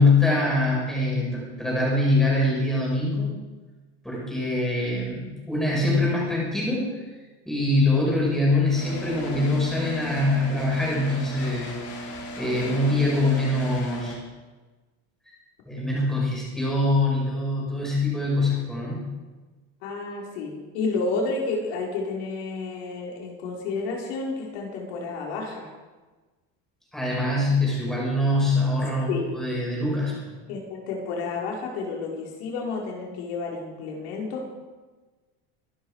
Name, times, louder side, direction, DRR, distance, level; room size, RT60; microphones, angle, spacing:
voice 1, 0.0-3.3 4.0-7.0 7.4-11.7 12.4-14.2 15.6-19.0 26.9-30.4, left 2 dB, ahead, -5 dB, 5.9 m, -24 dB
sound 1, 8.7-14.2, equal, 50° left, 4.5 m, -37 dB
voice 2, 12.5-12.8 19.8-25.7 29.1-29.3 30.5-34.5, left 4 dB, 80° left, -1 dB, 4.8 m, -31 dB
24.5 x 12.0 x 4.9 m, 1.3 s
cardioid pair, 165°, 32 cm